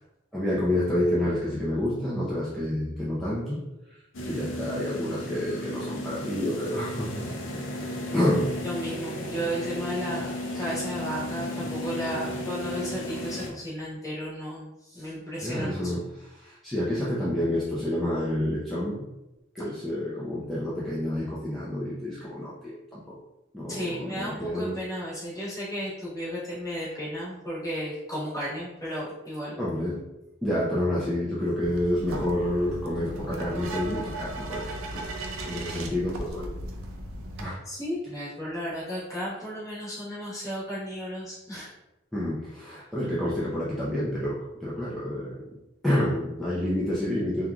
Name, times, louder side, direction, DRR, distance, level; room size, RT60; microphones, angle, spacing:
voice 1, 0.3-3.6 3.9-4.0 4.2-7.3 8.1-8.5 15.4-19.1 19.5-23.2 23.5-24.8 29.6-30.0 30.4-35.0 35.4-36.5 37.4-37.6 42.1-45.6 45.8-47.5, left 1 dB, ahead, -9 dB, 0.4 m, -29 dB
sound 1, 4.1-13.5, left 1 dB, 60° left, 0.5 m, -34 dB
voice 2, 8.6-16.0 23.7-29.6 37.6-41.7, equal, 15° left, -9 dB, 1.1 m, -34 dB
sound 2, 31.6-37.4, right 1 dB, 75° right, 0.4 m, -36 dB
3.0 x 2.3 x 2.3 m, 0.95 s
head